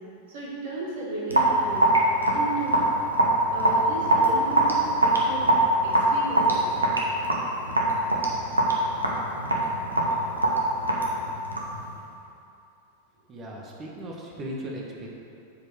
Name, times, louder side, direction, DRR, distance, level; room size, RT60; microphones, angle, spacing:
voice 1, 0.3-1.9 2.3-2.8 3.5-5.5 5.8-6.7, right 3 dB, 55° right, -5 dB, 2.1 m, -34 dB
Raindrop / Drip, 1.3-11.8, right 1 dB, 80° right, 1.1 m, -23 dB
voice 2, 13.3-15.1, right 1 dB, 25° right, -2 dB, 1.5 m, -37 dB
8.4 x 5.1 x 6.3 m, 2.7 s
figure-of-eight pair, 90°, 0 cm